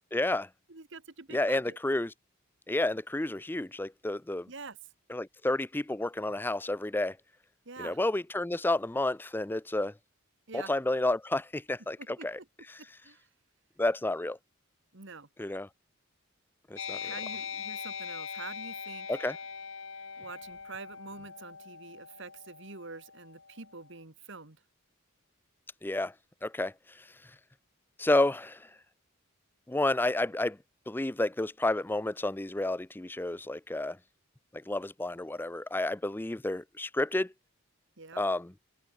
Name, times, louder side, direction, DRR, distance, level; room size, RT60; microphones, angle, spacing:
voice 1, 0.1-0.5 1.3-2.1 2.7-4.5 5.1-7.2 7.8-9.9 10.5-12.4 12.7-12.8 13.8-14.4 15.4-15.7 16.7-17.1 19.1-19.4 25.8-26.1 26.4-27.0 28.0-28.7 29.7-30.6 30.9-34.0 34.5-37.3 38.2-38.5, left 2 dB, 10° left, 0.5 m, -30 dB
voice 2, 0.7-1.8 4.5-4.8 7.7-8.0 10.5-10.7 12.0-12.5 13.0-13.2 14.9-15.3 17.0-19.1 20.2-24.6 38.0-38.2, right 4 dB, 60° right, 2.0 m, -46 dB
sound 1, 16.8-23.8, left 6 dB, 65° left, 2.3 m, -41 dB
head